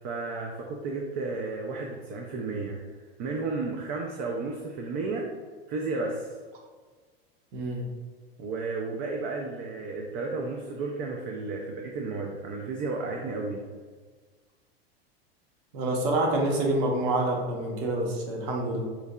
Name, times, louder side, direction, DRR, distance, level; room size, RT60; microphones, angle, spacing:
voice 1, 0.0-2.8 3.2-5.3 5.7-6.3 8.4-13.7, right 3 dB, 45° right, 1 dB, 0.5 m, -33 dB
voice 2, 7.5-7.8 15.7-18.8, right 2 dB, 60° right, -1 dB, 1.0 m, -27 dB
4.4 x 2.7 x 2.2 m, 1.4 s
hypercardioid pair, 110°, 30 cm